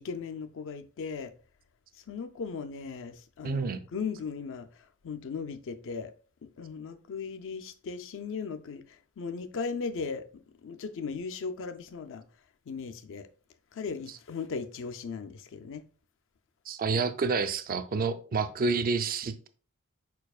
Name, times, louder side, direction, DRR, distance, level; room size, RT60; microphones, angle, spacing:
voice 1, 0.0-1.3 2.1-4.7 5.0-6.1 6.6-8.8 9.2-12.2 12.7-13.3 13.7-15.8, left 5 dB, 60° left, 0.4 m, -37 dB
voice 2, 3.4-3.8 16.7-19.5, right 4 dB, 40° right, 0.4 m, -29 dB
4.8 x 4.5 x 2.3 m
head